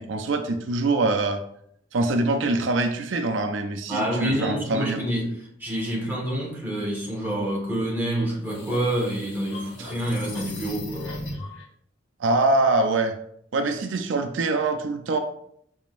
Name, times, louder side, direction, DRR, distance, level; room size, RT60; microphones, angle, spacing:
voice 1, 0.0-1.4 1.9-5.0 9.8-9.9 12.2-13.2 13.5-15.2, right 2 dB, 85° right, 7 dB, 0.5 m, -24 dB
voice 2, 3.9-11.1, right 1 dB, 10° right, -3 dB, 1.3 m, -27 dB
sound 1, 8.1-11.6, left 1 dB, 75° left, 1.3 m, -38 dB
5.8 x 3.6 x 2.5 m, 0.70 s
head